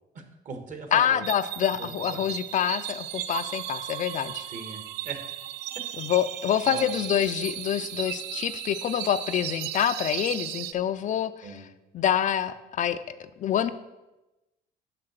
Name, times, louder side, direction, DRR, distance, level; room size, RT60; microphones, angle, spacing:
voice 1, 0.1-1.2 1.7-2.2 4.5-5.3 6.6-6.9 11.4-11.6, right 4 dB, 50° right, 6 dB, 1.4 m, -40 dB
voice 2, 0.9-4.5 6.0-11.7 11.9-13.0 13.4-13.7, left 9 dB, 50° left, 11 dB, 0.4 m, -26 dB
sound 1, 1.2-10.7, right 12 dB, 90° right, 0.4 m, -36 dB
5.8 x 5.7 x 6.5 m, 1.0 s
cardioid pair, 110°, 17 cm